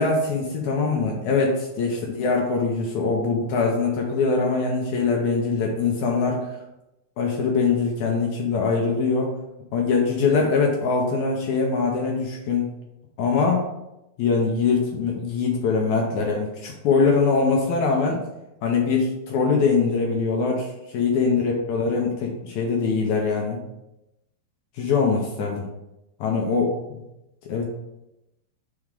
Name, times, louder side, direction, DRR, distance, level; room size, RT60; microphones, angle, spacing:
voice 1, 0.0-6.5 7.2-9.3 9.7-12.7 13.2-13.7 14.2-18.2 18.6-23.6 24.8-25.7 26.2-26.8 27.4-27.7, left 4 dB, 80° left, 0 dB, 1.7 m, -22 dB
4.8 x 4.3 x 5.1 m, 0.91 s
omnidirectional pair, 4.3 m